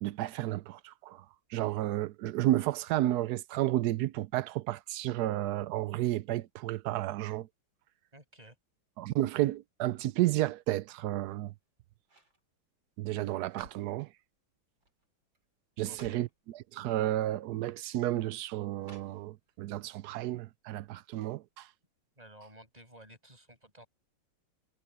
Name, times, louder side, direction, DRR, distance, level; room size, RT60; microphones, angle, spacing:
voice 1, 0.0-7.5 9.0-11.5 13.0-14.1 15.8-21.7, right 14 dB, 80° right, 0.8 m, -32 dB
voice 2, 8.1-8.6 15.8-16.2 22.2-23.9, right 1 dB, 15° right, 8.1 m, -54 dB
sound 1, 11.2-11.6 12.0-12.4 13.2-14.0 14.8-15.1 15.3-15.4 15.8-16.4 17.3-17.4 18.8-19.5 19.9-20.0, right 2 dB, 60° right, 6.1 m, -56 dB
omnidirectional pair, 2.2 m